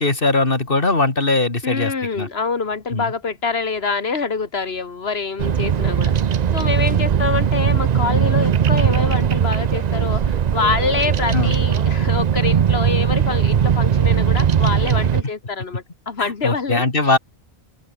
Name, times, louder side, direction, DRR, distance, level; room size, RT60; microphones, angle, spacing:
voice 1, 0.0-2.3 2.9-3.1 11.3-11.5 16.2-17.2, left 3 dB, 60° left, 3.1 m, -20 dB
voice 2, 1.6-6.1 6.5-17.2, left 4 dB, 80° left, 2.1 m, -25 dB
Bird vocalization bird call bird song, 5.4-15.2, right 8 dB, 50° right, 0.7 m, -19 dB
open air
omnidirectional pair, 1.0 m